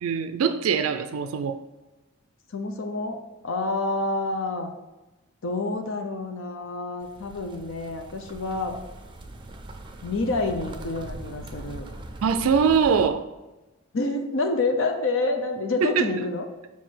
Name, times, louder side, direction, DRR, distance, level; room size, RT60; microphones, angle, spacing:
voice 1, 0.0-1.6 12.2-13.2 15.8-16.1, right 6 dB, 75° right, 8 dB, 0.4 m, -22 dB
voice 2, 2.5-3.2 3.4-4.7 5.4-8.7 10.0-11.9 13.9-16.5, left 2 dB, 60° left, 4 dB, 0.6 m, -28 dB
sound 1, 7.0-13.1, right 1 dB, 20° right, 0.5 m, -41 dB
5.7 x 4.6 x 4.5 m, 1.1 s
head